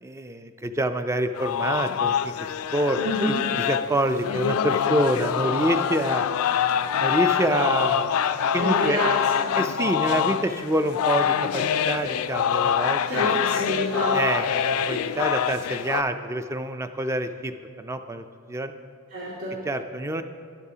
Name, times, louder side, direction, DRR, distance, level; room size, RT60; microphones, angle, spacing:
voice 1, 0.0-2.3 2.7-6.3 7.0-8.1 8.5-9.0 9.6-13.4 14.1-17.5 17.8-18.7 19.7-20.2, right 1 dB, 15° right, 9 dB, 0.3 m, -27 dB
sound 1, 1.4-16.0, left 8 dB, 70° left, 0.3 m, -25 dB
voice 2, 2.9-3.4 8.6-9.1 9.4-9.5 13.1-14.2 19.1-19.5, left 1 dB, 85° right, -10 dB, 2.3 m, -27 dB
11.5 x 9.7 x 2.8 m, 2.2 s
head